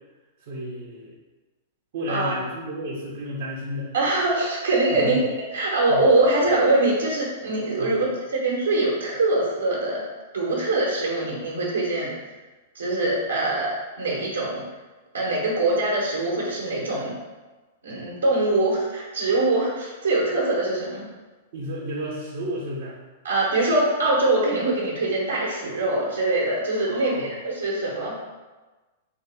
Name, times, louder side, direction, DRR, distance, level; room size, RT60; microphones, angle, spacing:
voice 1, 0.4-1.1 1.9-3.9 4.9-5.2 5.9-6.0 7.8-8.0 21.5-22.9 26.9-27.3, equal, 55° right, -5 dB, 1.0 m, -32 dB
voice 2, 3.9-5.2 5.5-10.0 10.3-12.1 12.7-13.7 14.0-14.6 15.1-17.1 17.8-21.0 23.2-28.2, right 2 dB, 70° right, -5 dB, 1.3 m, -23 dB
3.5 x 3.4 x 4.2 m, 1.2 s
figure-of-eight pair, 100°, 0 cm